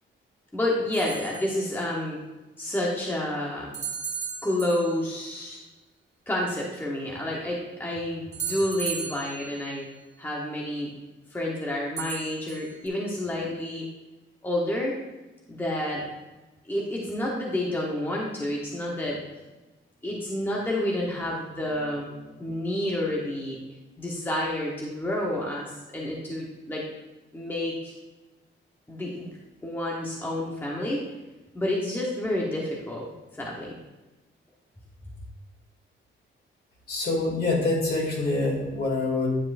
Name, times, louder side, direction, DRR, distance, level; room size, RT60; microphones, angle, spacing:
voice 1, 0.5-2.2 2.6-3.7 4.4-5.6 6.3-9.9 10.2-10.9 11.3-13.9 14.4-14.9 15.5-16.0 16.7-19.2 20.0-23.6 24.0-25.7 25.9-26.8 27.3-28.0 28.9-29.3 29.6-31.0 31.5-33.0 33.3-33.7, left 1 dB, 10° left, -4 dB, 1.2 m, -29 dB
sound 1, 0.9-1.6 3.7-5.2 8.3-9.8 12.0-12.9, right 7 dB, 35° right, 1.3 m, -36 dB
voice 2, 36.9-39.3, left 2 dB, 50° left, -2 dB, 2.6 m, -25 dB
10.0 x 7.2 x 2.6 m, 1.1 s
wide cardioid pair, 145°, 21 cm